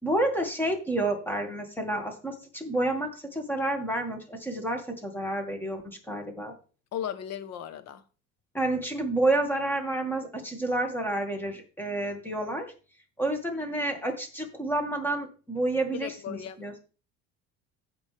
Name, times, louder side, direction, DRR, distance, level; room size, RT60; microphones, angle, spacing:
voice 1, 0.0-5.8 6.1-6.5 8.5-12.7 13.2-16.8, right 1 dB, 5° left, 2.1 m, -29 dB
voice 2, 6.9-8.0 15.9-16.6, left 9 dB, 55° left, 1.2 m, -36 dB
15.0 x 5.2 x 3.5 m
cardioid pair, 140°, 31 cm